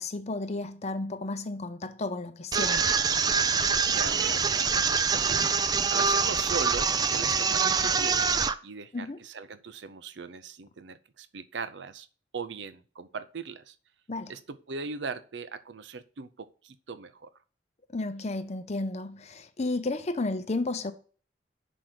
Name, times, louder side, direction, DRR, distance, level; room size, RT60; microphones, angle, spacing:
voice 1, 0.0-3.0 8.9-9.2 14.1-14.3 17.9-20.9, left 2 dB, 40° left, 0.6 m, -33 dB
sound 1, 2.5-8.5, right 5 dB, 20° right, 0.4 m, -25 dB
voice 2, 3.9-5.5 5.9-12.1 12.3-13.8 14.3-17.3, right 5 dB, 85° right, 0.6 m, -39 dB
6.0 x 5.2 x 6.1 m
head